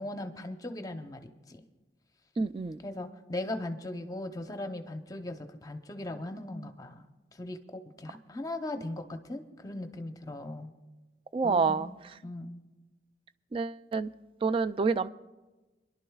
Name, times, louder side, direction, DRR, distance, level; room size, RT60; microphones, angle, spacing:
voice 1, 0.0-1.6 2.8-10.7 11.4-11.9 12.2-12.6, left 1 dB, 20° left, 0.7 m, -39 dB
voice 2, 2.4-2.8 11.3-11.9 13.5-14.1 14.4-15.1, right 4 dB, 30° right, 0.3 m, -28 dB
27.0 x 11.5 x 2.3 m
head